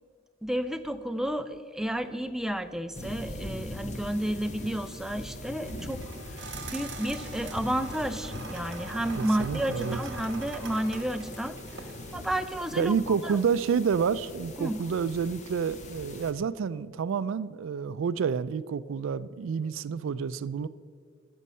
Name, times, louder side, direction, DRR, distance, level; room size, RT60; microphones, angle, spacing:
voice 1, 0.4-6.0 6.4-11.5 12.1-13.0 13.2-13.4 14.6-14.8, right 1 dB, ahead, 9 dB, 0.3 m, -31 dB
sound 1, 2.9-16.3, left 1 dB, 35° left, 0.8 m, -41 dB
sound 2, 5.6-12.3, right 4 dB, 60° right, 1.1 m, -43 dB
voice 2, 9.2-10.0 12.7-20.7, right 6 dB, 80° right, 17 dB, 0.3 m, -29 dB
14.0 x 6.3 x 5.4 m, 2.1 s
head